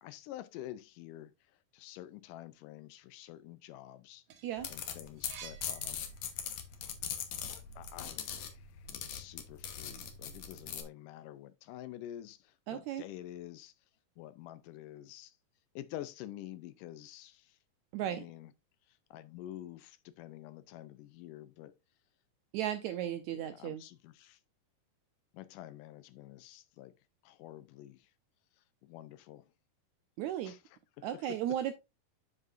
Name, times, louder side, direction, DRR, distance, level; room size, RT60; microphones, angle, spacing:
voice 1, 0.0-4.3 4.7-6.1 7.5-13.7 14.2-15.4 15.8-17.6 18.0-18.5 18.9-21.8 23.3-24.4 25.3-26.9 27.2-28.1 28.6-29.5 30.4-31.4, left 13 dB, 80° left, 2.0 m, -48 dB
sound 1, 4.0-6.7 7.1-8.6, right 9 dB, 70° right, 2.4 m, -53 dB
sound 2, 4.6-10.8, left 8 dB, 60° left, 2.0 m, -41 dB
voice 2, 12.7-13.0 17.9-18.2 22.5-23.8 30.2-30.5 31.0-31.7, right 11 dB, 85° right, 1.7 m, -35 dB
7.9 x 7.7 x 2.5 m
omnidirectional pair, 4.0 m